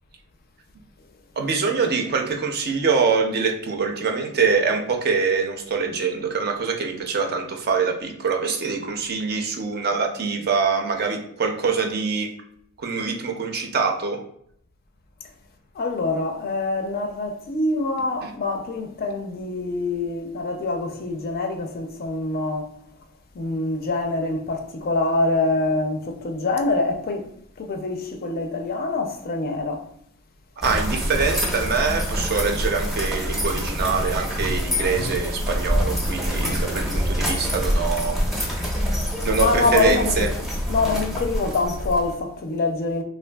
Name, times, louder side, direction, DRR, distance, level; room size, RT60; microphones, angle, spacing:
voice 1, 1.4-12.3 12.8-14.2 18.2-18.3 30.6-38.2 39.2-40.3, right 5 dB, 45° right, 0.5 m, -24 dB
voice 2, 15.8-22.7 23.4-27.3 27.6-29.8 36.4-36.6 39.4-40.3 40.7-43.0, left 3 dB, 45° left, 0.4 m, -25 dB
sound 1, 30.6-42.1, equal, ahead, 0.6 m, -26 dB
3.3 x 2.5 x 2.2 m
head